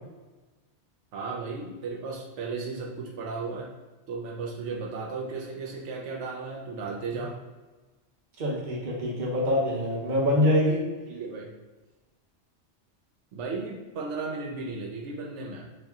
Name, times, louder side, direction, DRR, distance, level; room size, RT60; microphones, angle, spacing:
voice 1, 1.1-3.7 4.1-7.4 11.1-11.5 13.3-15.7, right 4 dB, 85° right, -1 dB, 0.9 m, -35 dB
voice 2, 8.4-10.8, left 1 dB, 45° right, -3 dB, 0.9 m, -25 dB
3.2 x 2.7 x 3.5 m, 1.2 s
omnidirectional pair, 1.2 m